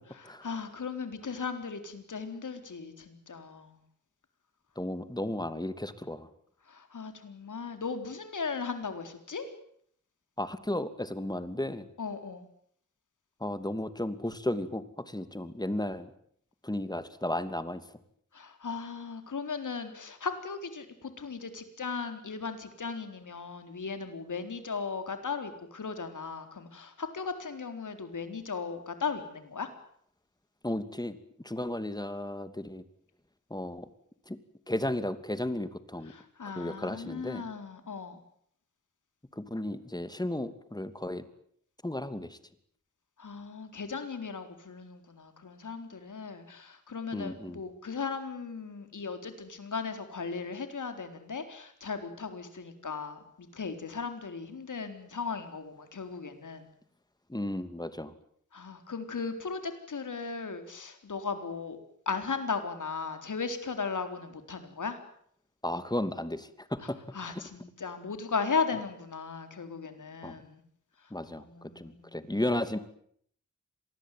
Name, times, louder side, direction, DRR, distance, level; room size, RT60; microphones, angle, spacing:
voice 1, 0.4-3.8 6.7-9.5 12.0-12.5 18.3-29.7 36.1-38.2 43.2-56.7 58.5-61.8 62.1-65.0 67.1-70.6 71.3-72.3, left 5 dB, 80° left, 8 dB, 4.1 m, -37 dB
voice 2, 4.8-6.3 10.4-11.9 13.4-16.1 16.6-17.8 30.6-31.2 31.4-32.8 33.5-33.9 34.3-34.4 34.7-36.1 36.6-37.4 39.3-41.2 41.8-42.4 47.1-47.6 57.3-58.1 65.6-67.0 67.2-67.4 70.2-70.4 71.1-72.8, left 1 dB, 15° left, 12 dB, 2.7 m, -34 dB
26.5 x 20.0 x 9.4 m, 0.67 s
wide cardioid pair, 65°, 30 cm